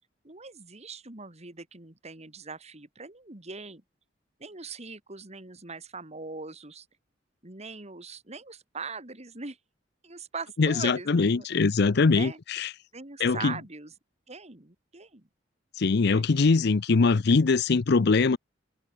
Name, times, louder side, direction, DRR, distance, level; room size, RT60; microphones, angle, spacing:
voice 1, 0.2-3.8 4.4-6.9 7.4-9.6 10.0-11.4 12.1-12.4 12.9-13.9 14.3-15.3 16.0-16.3, right 4 dB, 35° right, 2.8 m, -41 dB
voice 2, 10.6-12.7 13.2-13.6 15.8-18.4, left 4 dB, 60° left, 0.6 m, -22 dB
head